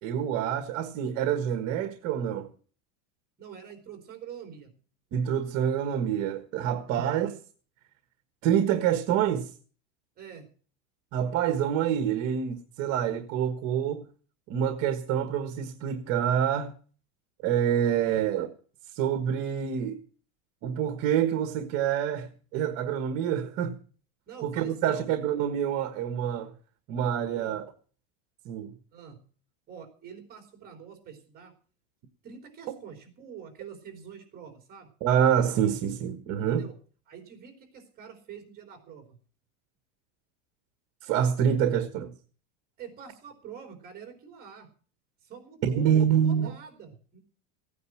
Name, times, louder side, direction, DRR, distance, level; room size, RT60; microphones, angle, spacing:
voice 1, 0.0-2.5 5.1-7.4 8.4-9.5 11.1-14.0 14.5-16.7 17.4-18.5 18.9-20.0 20.6-23.8 24.4-26.5 26.9-27.7 28.4-28.7 35.0-36.6 41.0-42.1 45.6-46.5, right 9 dB, 40° right, 1.5 m, -27 dB
voice 2, 3.4-4.7 6.9-7.2 10.2-10.5 18.0-18.3 24.3-25.1 27.3-27.6 28.9-29.2 29.7-31.5 32.2-34.9 36.5-36.8 37.1-39.2 42.8-44.7 45.2-47.2, right 7 dB, 25° right, 3.4 m, -46 dB
16.5 x 9.5 x 6.0 m
supercardioid pair, 170°, 38 cm